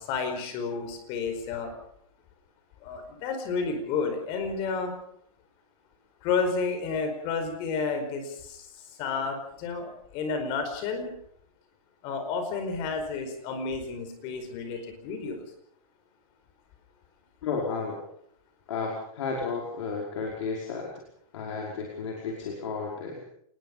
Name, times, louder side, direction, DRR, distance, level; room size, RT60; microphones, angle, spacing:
voice 1, 0.0-1.7 2.8-4.9 6.2-8.6 9.0-11.1 12.0-15.4, left 4 dB, 30° left, 6 dB, 4.8 m, -31 dB
voice 2, 17.4-18.0 18.7-20.9 21.3-23.2, left 4 dB, 55° left, -1 dB, 5.3 m, -32 dB
28.0 x 20.0 x 5.4 m, 0.68 s
hypercardioid pair, 165°, 19 cm